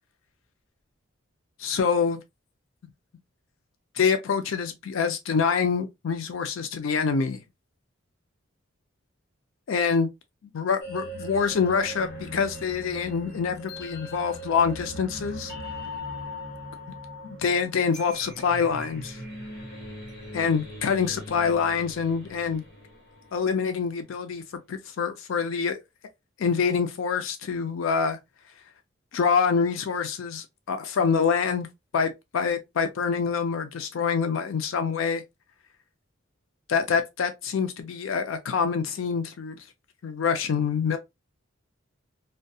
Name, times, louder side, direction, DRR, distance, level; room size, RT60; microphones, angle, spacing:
voice 1, 1.6-2.2 3.9-7.4 9.7-10.1 10.5-15.5 17.2-19.2 20.3-22.6 23.3-24.4 24.7-25.8 26.4-28.2 29.1-31.7 31.9-35.2 36.7-39.6 40.0-41.0, left 6 dB, 75° left, 0.4 m, -26 dB
sound 1, 10.8-23.8, left 1 dB, 50° left, 1.2 m, -40 dB
2.7 x 2.2 x 2.2 m
head